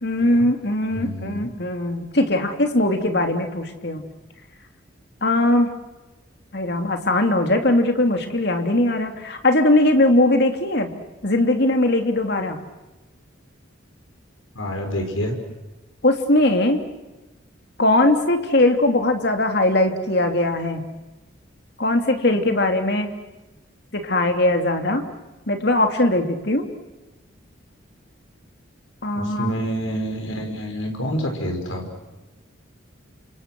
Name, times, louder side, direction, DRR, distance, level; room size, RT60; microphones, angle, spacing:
voice 1, 0.0-4.0 5.2-5.7 6.5-10.9 11.2-12.6 16.0-16.8 17.8-20.8 21.8-23.1 23.9-25.0 25.5-26.7 29.0-29.5, left 1 dB, 55° left, 5 dB, 2.9 m, -20 dB
voice 2, 0.9-1.5 14.5-15.4 29.1-31.8, equal, 85° left, 3 dB, 6.0 m, -27 dB
29.5 x 27.5 x 6.2 m, 1.1 s
head